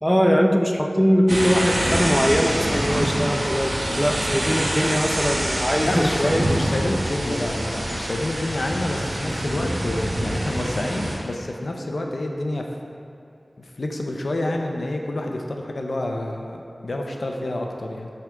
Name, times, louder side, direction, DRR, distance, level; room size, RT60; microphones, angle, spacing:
voice 1, 0.0-6.4, equal, ahead, 3 dB, 0.4 m, -21 dB
sound 1, 1.3-11.2, right 1 dB, 60° right, 1.0 m, -25 dB
voice 2, 5.8-12.7 13.6-18.1, left 1 dB, 75° left, 2 dB, 0.5 m, -28 dB
7.8 x 3.5 x 3.7 m, 2.6 s
wide cardioid pair, 70°, 0 cm